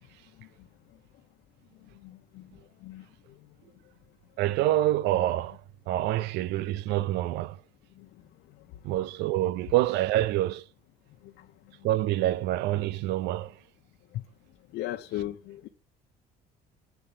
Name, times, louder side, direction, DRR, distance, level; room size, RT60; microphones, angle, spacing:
voice 1, 4.4-5.6 5.9-7.6 8.8-10.6 11.8-13.5, right 14 dB, 85° right, 0.5 m, -26 dB
voice 2, 14.7-15.7, left 14 dB, 80° left, 0.8 m, -34 dB
8.2 x 4.4 x 7.2 m
cardioid pair, 110°, 17 cm